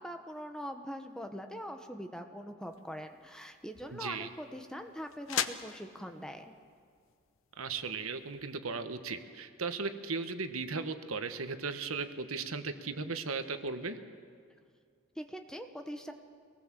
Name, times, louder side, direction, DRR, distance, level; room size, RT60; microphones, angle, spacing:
voice 1, 0.0-6.5 15.2-16.1, equal, 5° left, 6 dB, 1.0 m, -42 dB
sound 1, 2.6-8.5, left 9 dB, 75° left, 0.9 m, -42 dB
voice 2, 3.9-4.3 7.6-14.0, right 4 dB, 90° right, 9 dB, 1.3 m, -37 dB
24.0 x 19.0 x 7.5 m, 2.2 s
head